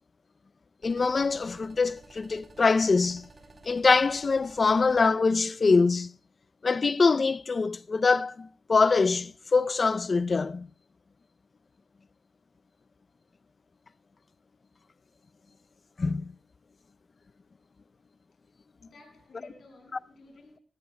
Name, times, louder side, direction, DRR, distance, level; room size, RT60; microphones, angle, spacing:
voice 1, 0.8-3.3 3.7-6.1 6.6-10.7 16.0-16.3, left 4 dB, 55° left, 0.6 m, -24 dB
sound 1, 0.8-5.1, right 2 dB, 60° right, 3.7 m, -53 dB
voice 2, 18.8-20.6, left 2 dB, 75° left, 6.3 m, -54 dB
21.0 x 17.5 x 2.3 m
cardioid pair, 45°, 0 cm